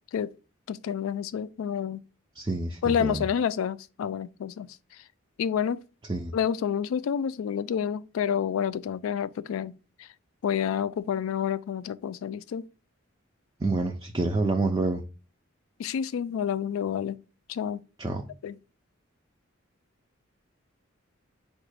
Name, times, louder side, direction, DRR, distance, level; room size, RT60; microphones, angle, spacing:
voice 1, 0.7-2.0 2.8-4.7 5.4-5.8 6.3-10.1 10.4-12.7 15.8-17.2 17.5-17.8 18.4-18.6, left 8 dB, 80° left, 0.3 m, -29 dB
voice 2, 2.4-3.2 6.1-6.3 13.6-15.0 18.0-18.2, right 3 dB, 20° right, 0.3 m, -27 dB
4.9 x 2.1 x 4.6 m
head